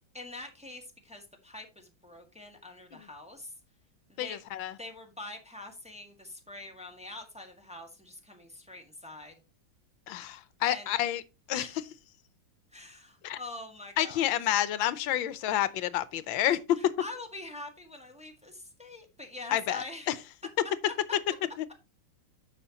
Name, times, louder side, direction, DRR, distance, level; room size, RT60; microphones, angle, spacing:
voice 1, 0.1-3.5 4.1-4.4 4.8-9.3 10.6-11.0 11.5-11.8 12.7-14.6 16.7-20.1, left 2 dB, 5° right, 1.6 m, -45 dB
voice 2, 4.2-4.7 10.1-11.2 11.5-11.7 13.2-13.4 14.0-16.8 19.5-20.1, left 12 dB, 90° left, 1.5 m, -29 dB
10.0 x 6.8 x 2.9 m
omnidirectional pair, 2.1 m